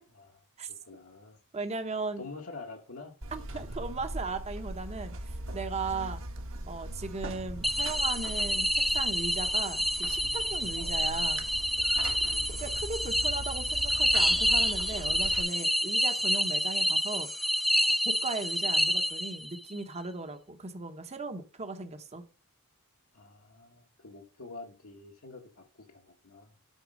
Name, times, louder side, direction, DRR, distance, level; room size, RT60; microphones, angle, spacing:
voice 1, 0.7-1.4 2.2-3.1 3.5-3.6 10.7-10.9 12.2-12.5 23.1-26.5, left 3 dB, 70° left, 1.4 m, -47 dB
voice 2, 1.5-2.3 3.3-6.2 6.7-11.4 12.5-17.3 17.8-22.2, right 3 dB, 30° right, 0.8 m, -37 dB
Buzz, 3.2-15.4, right 1 dB, 60° right, 1.3 m, -40 dB
sound 1, 7.6-19.6, equal, ahead, 0.4 m, -28 dB
8.3 x 4.4 x 5.0 m
head